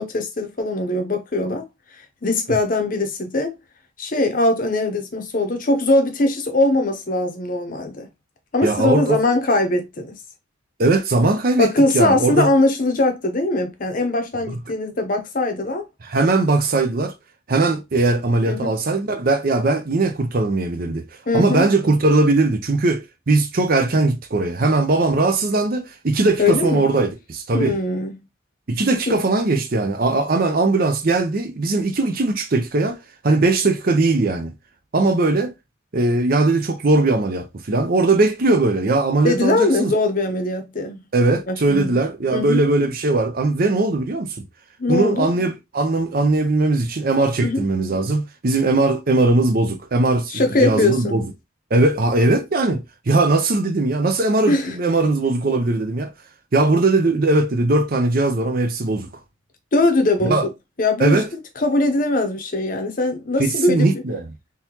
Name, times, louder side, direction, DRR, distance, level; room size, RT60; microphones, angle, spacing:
voice 1, 0.0-1.6 2.2-3.5 4.0-8.1 8.5-10.2 11.6-15.8 18.5-18.8 21.3-21.7 26.4-26.9 27.5-28.2 29.1-29.2 39.2-41.0 41.5-42.0 42.3-42.6 44.8-45.3 47.4-47.6 50.3-51.2 54.5-54.7 59.7-60.4 60.8-61.2 61.6-64.0, left 2 dB, 40° left, 0.7 m, -21 dB
voice 2, 8.6-9.2 10.8-12.5 16.0-17.1 17.5-21.0 21.3-27.7 28.7-33.0 33.2-34.5 34.9-35.5 35.9-39.9 41.1-44.3 44.9-50.3 50.6-51.2 51.7-56.1 56.5-59.1 60.2-60.5 61.0-61.3 63.4-64.3, right 2 dB, 45° right, 0.6 m, -19 dB
3.8 x 2.8 x 2.9 m
head